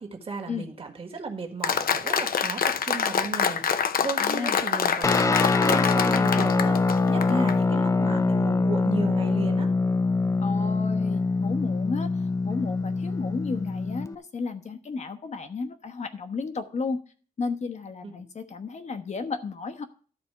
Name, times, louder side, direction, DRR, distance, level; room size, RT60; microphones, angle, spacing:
voice 1, 0.0-6.8 7.1-9.7 18.0-18.2, right 4 dB, 35° right, 4 dB, 1.7 m, -35 dB
Applause, 1.6-7.6, left 7 dB, 70° left, 0.7 m, -26 dB
voice 2, 4.2-4.6 7.3-7.5 10.4-12.1 12.4-17.0 17.4-19.8, left 4 dB, 45° left, 9 dB, 1.0 m, -33 dB
Guitar, 5.0-14.1, left 3 dB, 20° left, 0.4 m, -24 dB
12.5 x 4.3 x 7.8 m, 0.40 s
wide cardioid pair, 180°, 16 cm